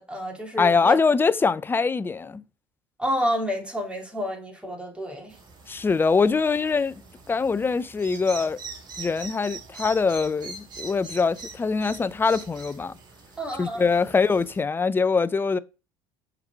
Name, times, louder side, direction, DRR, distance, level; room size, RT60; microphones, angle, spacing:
voice 1, 0.0-1.0 3.0-5.3 13.4-13.9, equal, 10° right, 2.4 m, -29 dB
voice 2, 0.6-2.4 5.7-6.9 7.3-8.6 9.0-12.9 13.6-15.6, left 4 dB, 20° left, 0.4 m, -23 dB
sound 1, 5.3-14.6, right 4 dB, 40° right, 2.1 m, -43 dB
6.0 x 3.9 x 4.5 m
hypercardioid pair, 70°, 11 cm